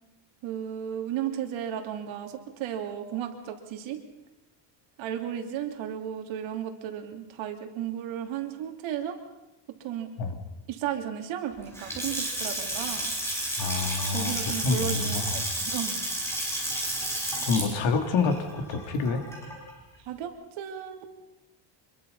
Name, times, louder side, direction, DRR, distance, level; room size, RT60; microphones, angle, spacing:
voice 1, 0.4-4.0 5.0-9.2 9.8-10.1 10.7-13.1 14.1-16.0 20.0-21.1, right 10 dB, 65° right, 4 dB, 2.9 m, -34 dB
Water tap faucet / Sink (filling or washing) / Splash splatter, 11.6-19.7, right 1 dB, 5° left, 6.6 m, -31 dB
voice 2, 13.6-15.4 17.5-19.3, left 4 dB, 60° left, 5 dB, 3.1 m, -28 dB
26.0 x 22.0 x 5.5 m, 0.98 s
cardioid pair, 165°, 50 cm